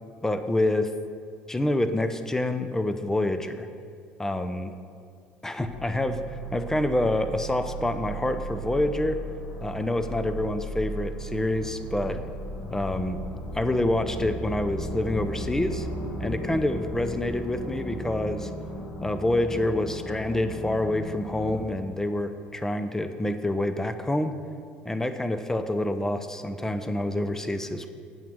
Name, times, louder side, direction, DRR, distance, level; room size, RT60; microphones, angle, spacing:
voice 1, 0.2-0.9 1.5-3.7 4.2-4.7 5.4-6.2 6.5-9.2 9.6-12.2 12.7-13.2 13.5-15.9 16.2-18.5 19.0-24.4 24.8-27.9, left 1 dB, 10° left, 9 dB, 0.7 m, -27 dB
sound 1, 5.6-21.6, right 1 dB, 70° left, 1.8 m, -36 dB
8.9 x 5.8 x 6.3 m, 2.2 s
supercardioid pair, 75°, 4 cm